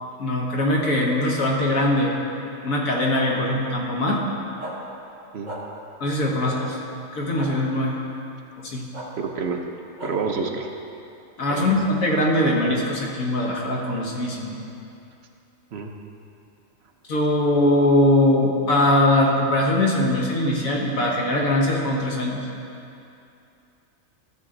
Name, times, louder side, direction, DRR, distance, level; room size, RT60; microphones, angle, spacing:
voice 1, 0.2-2.2 2.6-4.2 6.0-6.8 7.1-8.0 8.6-8.9 11.4-14.5 17.1-22.4, left 1 dB, 85° left, -2 dB, 1.8 m, -21 dB
sound 1, 4.6-4.7 5.4-5.6 6.4-6.5 7.4-7.5 8.9-9.1 10.0-10.1, right 1 dB, 35° right, 1.5 m, -35 dB
voice 2, 9.2-9.6 10.0-10.7 11.5-11.7 15.7-15.9, right 5 dB, 60° right, 3 dB, 0.9 m, -28 dB
14.0 x 7.3 x 3.8 m, 2.7 s
omnidirectional pair, 1.4 m